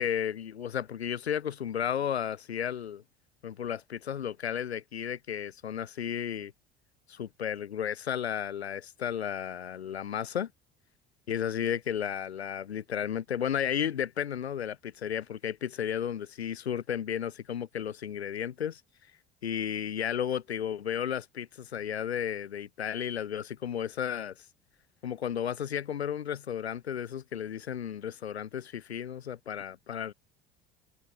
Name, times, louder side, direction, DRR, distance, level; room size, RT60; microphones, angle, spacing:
voice 1, 0.0-3.0 3.4-6.5 7.1-10.5 11.3-18.8 19.4-24.5 25.0-30.1, left 9 dB, 80° left, 6.0 m, -33 dB
open air
figure-of-eight pair, 65°, 32 cm